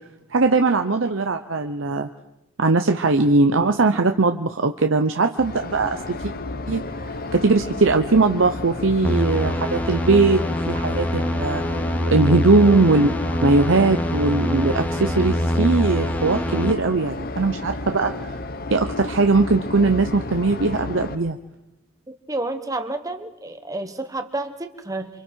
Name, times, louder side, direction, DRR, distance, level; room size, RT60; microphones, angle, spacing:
voice 1, 0.3-2.1 2.6-6.0 6.7-6.8 7.3-11.6 12.1-13.1 13.4-18.3 18.7-21.4, right 3 dB, 65° right, 6 dB, 0.8 m, -20 dB
sound 1, 5.4-21.2, left 2 dB, 45° left, 0.9 m, -32 dB
sound 2, 9.0-16.7, equal, 10° left, 1.0 m, -25 dB
voice 2, 22.3-25.1, right 2 dB, 15° right, 7 dB, 1.3 m, -30 dB
28.5 x 25.5 x 4.7 m, 0.92 s
head